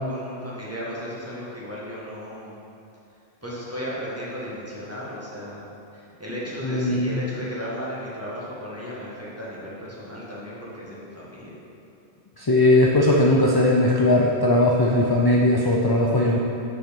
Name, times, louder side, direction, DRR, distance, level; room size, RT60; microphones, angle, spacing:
voice 1, 0.1-2.6 3.4-5.6 5.9-11.5, equal, 10° right, -7 dB, 1.7 m, -35 dB
voice 2, 6.6-7.2 12.4-16.4, left 1 dB, 30° left, -3 dB, 0.4 m, -19 dB
7.5 x 5.7 x 5.2 m, 2.7 s
omnidirectional pair, 1.2 m